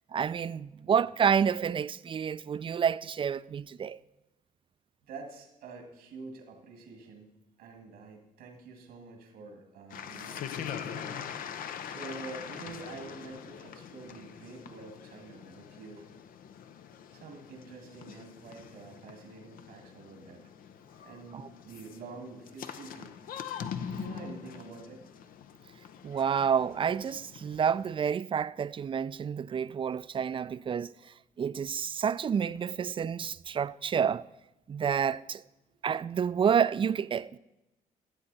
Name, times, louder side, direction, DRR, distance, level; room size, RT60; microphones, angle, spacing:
voice 1, 0.1-4.0 21.3-21.5 26.0-34.2 34.7-35.4 35.8-37.4, right 7 dB, 35° right, 0.4 m, -29 dB
voice 2, 5.0-11.4 11.6-16.1 17.1-20.4 21.0-23.2 23.8-25.0 35.7-35.8, right 3 dB, 90° right, 2.0 m, -47 dB
sound 1, 9.9-27.9, left 8 dB, 75° left, 0.6 m, -43 dB
14.0 x 7.6 x 4.1 m
supercardioid pair, 70°, 15 cm